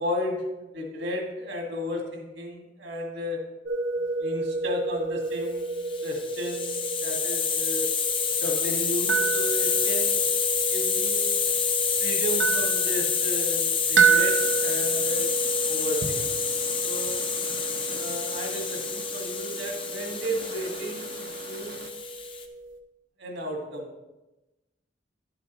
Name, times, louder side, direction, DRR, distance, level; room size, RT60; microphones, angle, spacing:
voice 1, 0.0-3.5 4.2-7.9 8.4-10.4 10.7-11.3 12.0-15.3 15.7-16.5 16.8-17.3 17.9-21.8 23.2-24.0, left 1 dB, 75° right, 1 dB, 1.8 m, -34 dB
sound 1, 3.7-22.8, right 5 dB, 90° right, 0.9 m, -30 dB
Hiss, 5.8-22.4, left 6 dB, 30° left, 0.8 m, -28 dB
sound 2, 14.0-21.9, right 4 dB, 55° right, 0.7 m, -45 dB
11.0 x 7.6 x 3.0 m, 1.0 s
head